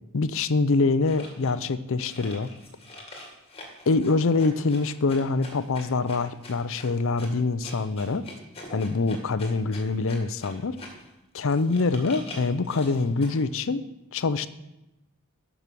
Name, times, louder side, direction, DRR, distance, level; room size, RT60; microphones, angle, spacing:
voice 1, 0.1-2.5 3.9-8.3 8.7-10.8 11.3-13.8 14.1-14.5, left 3 dB, 65° left, 14 dB, 0.6 m, -25 dB
sound 1, 1.0-1.5 2.0-11.1 11.5-13.4, left 1 dB, 30° left, 2.1 m, -44 dB
11.0 x 6.1 x 6.9 m, 0.94 s
head